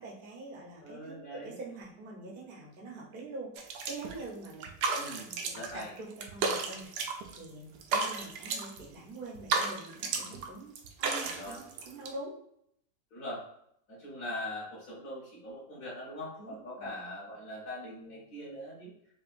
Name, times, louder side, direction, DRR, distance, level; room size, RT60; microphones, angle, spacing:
voice 1, 0.0-5.1 5.4-12.4 16.4-16.9, right 2 dB, 45° right, -3 dB, 0.7 m, -45 dB
voice 2, 0.8-1.6 4.9-5.9 11.2-11.6 13.1-13.4 13.9-18.9, left 1 dB, 45° left, -9 dB, 1.7 m, -42 dB
sound 1, 3.6-4.2 4.5-5.8 6.1-7.5 7.8-8.8 9.3-10.5 10.8-12.1, right 4 dB, 70° right, 1.0 m, -33 dB
4.9 x 2.5 x 2.5 m, 0.71 s
omnidirectional pair, 2.1 m